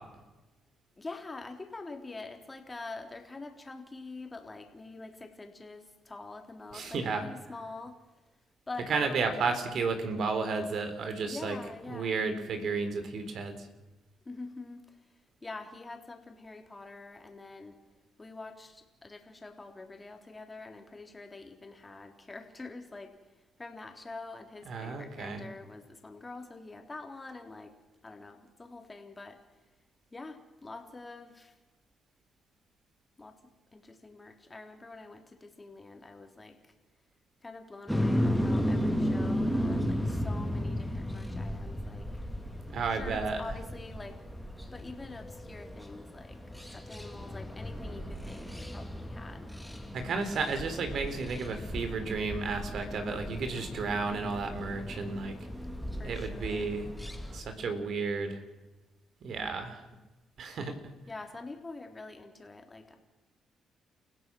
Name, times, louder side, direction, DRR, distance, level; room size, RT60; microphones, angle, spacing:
voice 1, 1.0-8.0 8.7-9.3 11.3-12.2 14.3-17.8 18.2-27.7 28.0-29.4 30.1-31.6 33.2-33.4 33.7-36.7 37.4-42.1 42.9-44.2 44.7-46.4 46.7-49.5 56.0-56.7 61.1-63.0, left 3 dB, 20° left, 4 dB, 3.6 m, -45 dB
voice 2, 6.7-7.3 8.9-11.6 11.9-13.7 24.7-25.5 42.7-43.4 49.9-55.3 56.0-56.9 57.3-58.4 59.2-59.8 60.4-60.8, right 4 dB, 60° right, 8 dB, 3.8 m, -32 dB
sound 1, 37.9-57.4, equal, ahead, 2.9 m, -35 dB
30.0 x 16.0 x 6.2 m, 1.1 s
cardioid pair, 90°, 0 cm